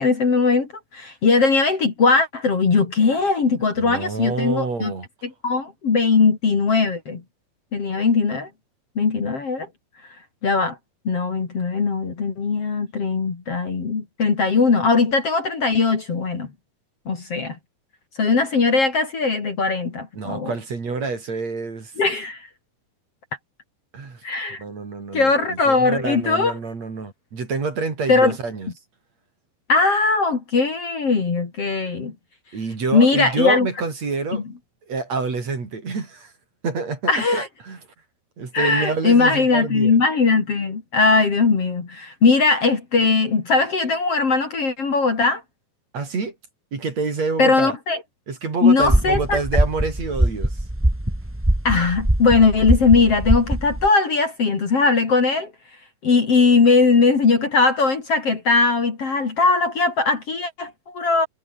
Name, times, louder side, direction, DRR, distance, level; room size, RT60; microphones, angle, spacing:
voice 1, 0.0-4.9 5.2-7.2 7.7-8.5 9.0-9.7 10.4-10.8 11.1-16.5 17.1-17.6 18.2-20.5 22.0-22.4 24.2-24.6 25.1-26.5 28.1-28.4 29.7-32.1 32.9-33.7 34.3-34.4 37.1-37.5 38.5-45.4 47.4-48.0 48.6-49.4 51.7-55.5 56.0-61.3, left 4 dB, 40° left, 3.7 m, -19 dB
voice 2, 3.8-5.1 20.1-21.9 23.9-24.2 24.6-28.7 32.5-34.4 34.9-36.3 36.6-37.8 38.4-40.0 45.9-46.4 46.7-47.8 48.3-50.6, right 4 dB, 45° right, 5.1 m, -27 dB
sound 1, 48.8-53.9, right 1 dB, 15° right, 0.4 m, -22 dB
omnidirectional pair, 4.5 m